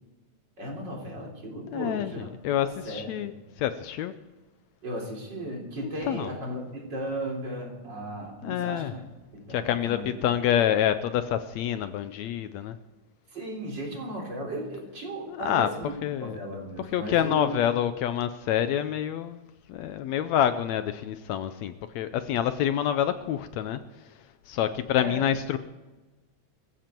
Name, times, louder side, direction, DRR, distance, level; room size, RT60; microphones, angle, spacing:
voice 1, 0.6-2.3 2.6-3.3 4.8-9.0 9.3-10.2 13.3-15.9 16.2-17.6 25.0-25.3, right 1 dB, 35° right, -1 dB, 4.2 m, -36 dB
voice 2, 1.7-4.1 6.1-6.3 8.4-8.9 9.5-12.8 15.3-15.7 16.0-16.4 16.9-19.4 19.7-23.8 24.1-24.2 24.5-25.6, left 10 dB, 75° left, 11 dB, 1.9 m, -27 dB
20.0 x 15.0 x 4.5 m, 1.2 s
omnidirectional pair, 3.4 m